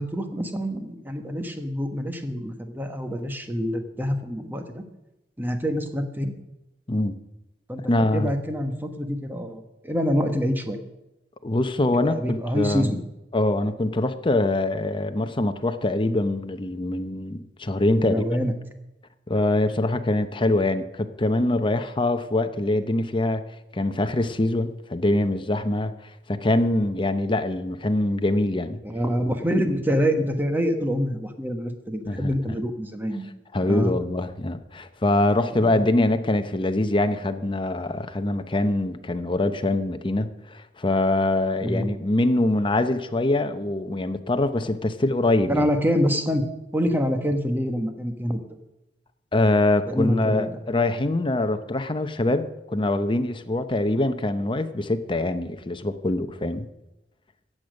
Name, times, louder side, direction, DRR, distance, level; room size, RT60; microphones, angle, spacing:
voice 1, 0.0-4.8 5.4-6.3 7.7-10.8 11.9-13.0 18.0-18.5 28.8-33.3 33.6-33.9 35.6-35.8 41.6-41.9 45.5-46.4 46.7-48.4 49.9-50.6, equal, 10° right, 6 dB, 1.3 m, -26 dB
voice 2, 7.9-8.3 11.4-12.9 13.3-18.2 19.3-23.5 23.7-25.9 26.3-28.8 32.1-32.3 33.5-45.7 49.3-56.7, left 2 dB, 25° left, 9 dB, 0.8 m, -24 dB
14.5 x 8.8 x 6.5 m, 0.96 s
head